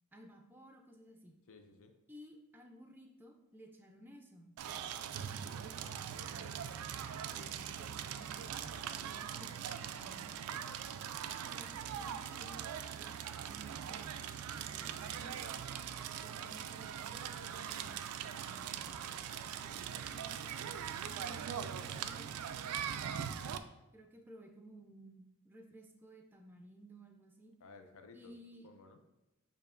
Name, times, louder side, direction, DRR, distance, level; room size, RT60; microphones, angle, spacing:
voice 1, 0.1-1.4 2.1-4.6 5.1-6.7 7.1-10.8 11.3-15.6 16.2-19.2 19.7-20.6 21.0-23.1 23.9-27.5 28.1-28.7, right 1 dB, 10° right, 2 dB, 0.4 m, -57 dB
voice 2, 1.5-1.9 10.6-11.1 27.6-28.3 28.6-29.0, left 3 dB, 65° left, 6 dB, 0.5 m, -57 dB
Crackle, 4.6-23.6, right 8 dB, 85° right, 0.3 m, -41 dB
6.8 x 2.8 x 2.5 m, 0.97 s
head